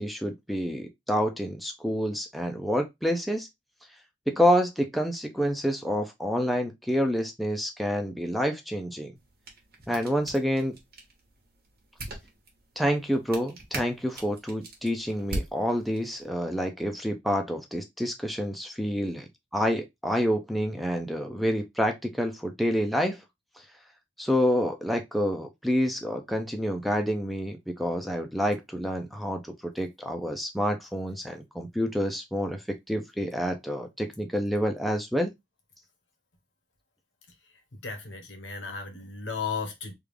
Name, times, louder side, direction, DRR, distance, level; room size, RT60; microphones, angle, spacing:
voice 1, 0.0-3.5 4.3-9.1 9.9-10.7 12.8-23.2 24.2-35.3, equal, ahead, 0.4 m, -28 dB
sound 1, 9.1-16.3, right 2 dB, 55° right, 1.2 m, -41 dB
voice 2, 37.8-39.9, left 5 dB, 85° left, 1.0 m, -35 dB
3.5 x 2.4 x 3.2 m
head